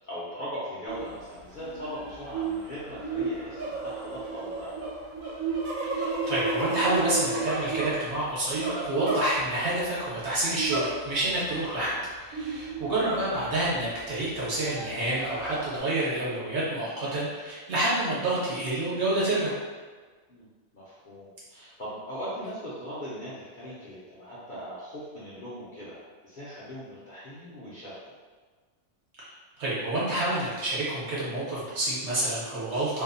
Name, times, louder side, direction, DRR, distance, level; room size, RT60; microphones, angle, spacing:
voice 1, 0.1-4.9 11.8-12.0 20.3-20.5 20.7-28.1, equal, 55° left, -10 dB, 0.5 m, -40 dB
sound 1, 0.9-1.2 1.5-9.8 10.6-11.3 11.6-11.7 12.3-13.8 14.3-15.8, right 3 dB, 85° right, 1.0 m, -32 dB
voice 2, 5.9-11.9 12.2-19.5 29.2-29.3 29.6-33.0, right 1 dB, 60° right, -8 dB, 1.1 m, -28 dB
2.6 x 2.0 x 2.5 m, 1.4 s
omnidirectional pair, 1.4 m